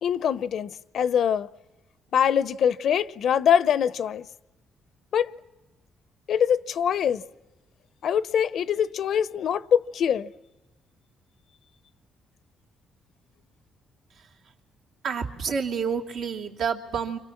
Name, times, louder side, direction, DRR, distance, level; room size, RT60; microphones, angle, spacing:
voice 1, 0.0-1.5 2.1-4.3 5.1-5.3 6.3-7.2 8.0-10.3, left 8 dB, 65° left, 0.8 m, -23 dB
voice 2, 15.0-17.2, right 6 dB, 70° right, 3.0 m, -29 dB
29.5 x 25.5 x 7.3 m
cardioid pair, 90°, 0 cm